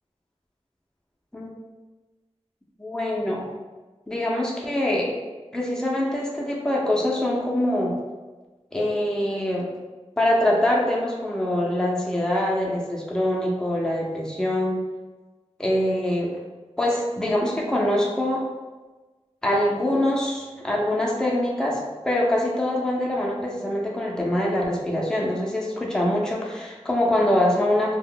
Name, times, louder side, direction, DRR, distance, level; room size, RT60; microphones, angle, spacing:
voice 1, 2.8-3.5 4.1-5.2 5.5-7.9 8.7-9.7 10.2-14.8 15.6-16.3 16.8-18.5 19.4-28.0, left 1 dB, 5° left, -3 dB, 0.6 m, -24 dB
2.4 x 2.1 x 3.7 m, 1.2 s
wide cardioid pair, 55°, 12 cm